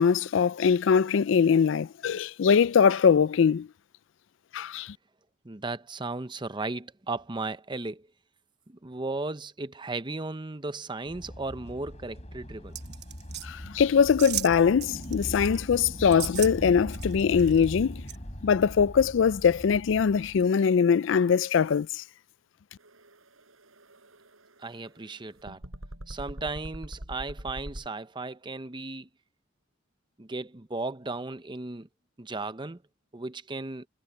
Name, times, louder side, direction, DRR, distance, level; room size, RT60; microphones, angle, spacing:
voice 1, 0.0-3.7 4.5-5.0 13.4-18.0 18.4-22.0, left 6 dB, 65° left, 0.4 m, -22 dB
voice 2, 5.4-8.1 8.7-13.0 24.6-25.6 26.1-29.1 30.2-31.9 32.2-32.8 33.1-33.9, right 3 dB, 25° right, 0.7 m, -36 dB
sound 1, 11.1-20.5, equal, 35° left, 4.3 m, -40 dB
sound 2, 12.8-13.5 14.2-14.5 14.8-15.6 16.1-16.5 16.9-17.6 18.1-18.2, right 13 dB, 55° right, 1.1 m, -35 dB
sound 3, 22.8-27.9, equal, 85° right, 5.5 m, -44 dB
head